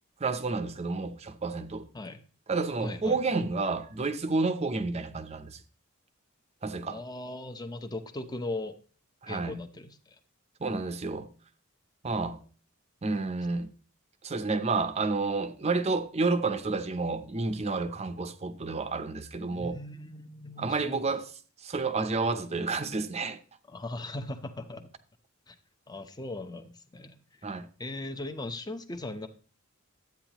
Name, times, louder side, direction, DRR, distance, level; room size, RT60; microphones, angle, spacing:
voice 1, 0.2-1.9 2.5-5.6 6.6-7.0 9.2-9.6 10.6-11.3 12.0-12.4 13.0-13.7 14.2-19.8 20.6-21.3 21.6-23.4 27.4-27.7, right 3 dB, 30° right, 0.6 m, -30 dB
voice 2, 2.8-3.2 6.9-8.8 9.3-10.2 19.5-21.1 23.7-24.9 25.5-25.6 25.9-27.2 27.4-29.3, left 2 dB, 20° left, 0.7 m, -39 dB
12.0 x 8.8 x 3.0 m
head